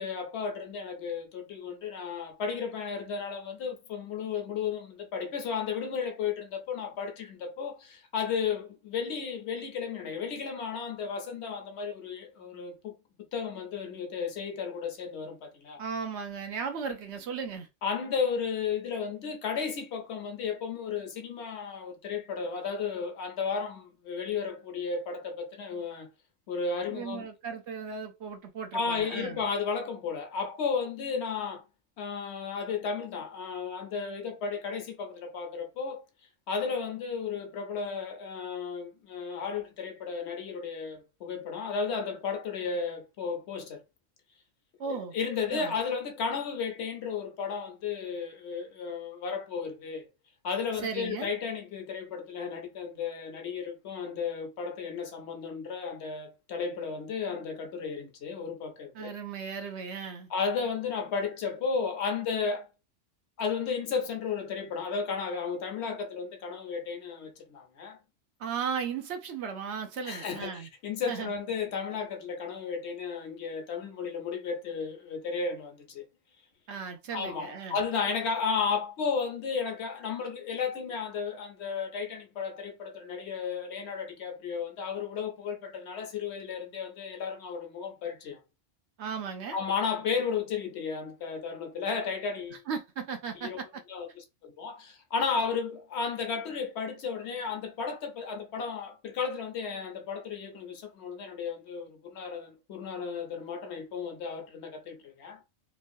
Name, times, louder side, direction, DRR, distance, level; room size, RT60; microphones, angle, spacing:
voice 1, 0.0-12.9 13.3-15.8 17.8-26.1 26.5-27.3 28.7-31.6 32.0-36.0 36.5-43.8 44.9-50.1 50.4-59.2 60.3-62.7 63.4-68.0 70.1-76.0 77.1-88.4 89.5-92.6 93.3-105.4, left 5 dB, 65° left, 0.9 m, -34 dB
voice 2, 15.8-17.7 26.8-29.4 44.8-45.1 45.5-45.8 50.8-51.3 58.9-60.3 68.4-70.7 71.1-71.3 76.7-77.8 89.0-89.6 92.7-93.8, right 6 dB, 65° right, 0.9 m, -36 dB
3.1 x 2.3 x 2.6 m
omnidirectional pair, 1.3 m